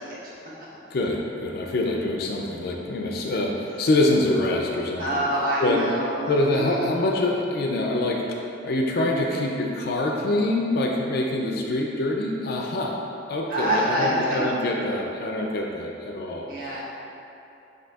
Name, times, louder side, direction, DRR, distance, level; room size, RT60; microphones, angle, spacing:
voice 1, 0.9-5.2 5.6-5.8 6.2-13.0 13.3-16.8, left 2 dB, 60° left, 0 dB, 0.4 m, -25 dB
voice 2, 5.0-6.7 13.5-14.4 16.5-16.8, right 1 dB, 55° right, -8 dB, 1.0 m, -26 dB
7.6 x 2.7 x 2.3 m, 2.8 s
head